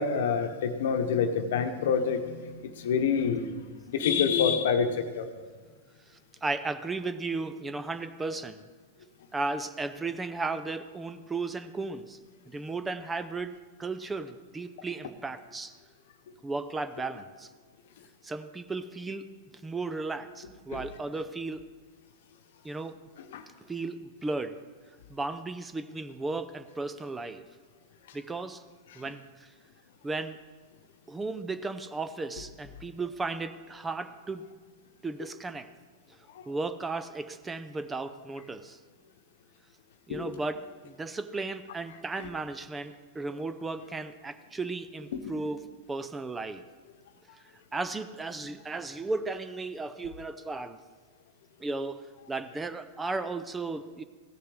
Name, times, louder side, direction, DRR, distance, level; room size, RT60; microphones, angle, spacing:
voice 1, 0.0-3.5 3.9-5.3 23.3-23.4 40.1-40.3, left 6 dB, 65° left, 8 dB, 1.0 m, -27 dB
voice 2, 6.4-8.7 9.3-12.2 12.5-13.5 13.8-15.7 16.4-17.5 18.2-19.3 19.6-21.7 22.6-23.0 23.7-24.6 25.1-27.4 28.1-28.6 29.0-29.5 30.0-30.4 31.1-34.4 35.0-35.7 36.5-38.8 40.1-46.6 47.7-50.8 51.6-52.0 52.3-54.0, right 3 dB, 15° right, 11 dB, 0.6 m, -35 dB
15.5 x 6.8 x 4.9 m, 1.4 s
hypercardioid pair, 100°, 0 cm